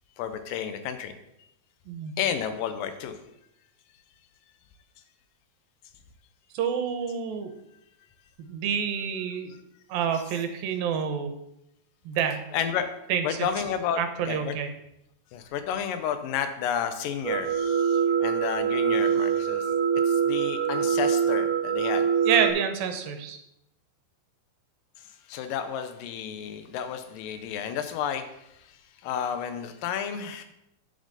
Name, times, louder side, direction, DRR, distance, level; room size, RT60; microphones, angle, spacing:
voice 1, 0.2-1.2 2.2-3.2 10.1-10.2 12.5-12.9 13.2-14.0 14.3-14.5 15.3-19.7 20.1-22.1 25.0-30.4, left 8 dB, 75° left, 8 dB, 2.4 m, -31 dB
voice 2, 1.9-2.2 6.5-7.5 8.4-9.5 9.9-11.3 12.1-12.5 13.1-13.2 14.0-14.7 22.3-23.4, right 7 dB, 80° right, 7 dB, 2.8 m, -28 dB
sound 1, 17.2-22.5, right 7 dB, 55° right, 2.0 m, -24 dB
10.5 x 7.1 x 4.1 m, 0.82 s
omnidirectional pair, 4.2 m